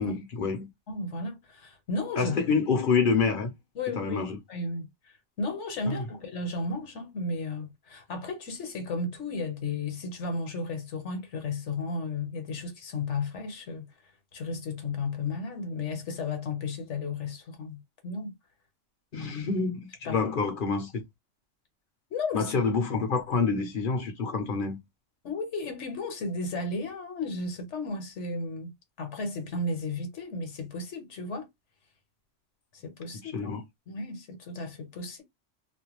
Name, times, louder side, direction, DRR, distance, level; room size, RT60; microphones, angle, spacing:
voice 1, 0.0-0.7 2.2-3.5 3.9-4.4 5.9-6.0 19.1-21.0 22.3-24.8 33.2-33.6, left 5 dB, 50° left, 0.8 m, -27 dB
voice 2, 0.9-2.4 3.7-4.2 4.5-13.8 14.3-18.3 19.2-19.3 20.0-20.2 22.1-22.5 25.2-31.5 32.7-33.6 33.9-35.2, left 3 dB, 70° left, 1.2 m, -34 dB
2.5 x 2.2 x 2.9 m
omnidirectional pair, 1.3 m